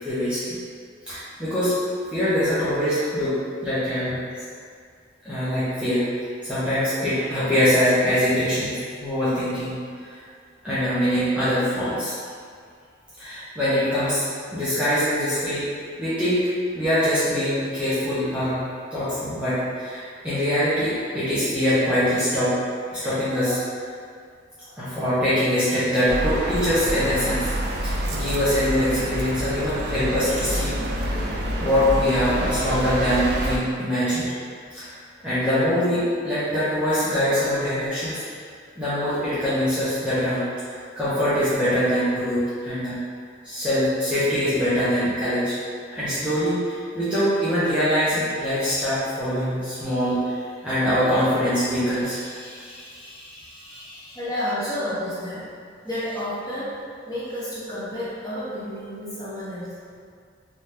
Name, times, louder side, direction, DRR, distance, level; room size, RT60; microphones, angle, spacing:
voice 1, 0.0-0.6 1.1-1.7 2.1-3.4 3.6-4.2 5.2-6.0 6.4-9.8 10.1-10.2 10.6-12.1 13.2-14.2 14.5-15.6 16.0-16.5 16.7-22.5 22.9-23.6 24.8-27.5 27.8-31.1 31.6-34.3 34.7-38.2 38.8-40.4 41.0-43.0 43.4-45.5 45.9-54.1, equal, 5° right, -14 dB, 0.6 m, -23 dB
sound 1, 26.1-33.6, right 1 dB, 60° right, 0.4 m, -27 dB
voice 2, 54.1-55.5 55.8-56.8 57.1-60.0, left 1 dB, 20° left, -11 dB, 0.8 m, -30 dB
2.7 x 2.2 x 3.2 m, 2.2 s
head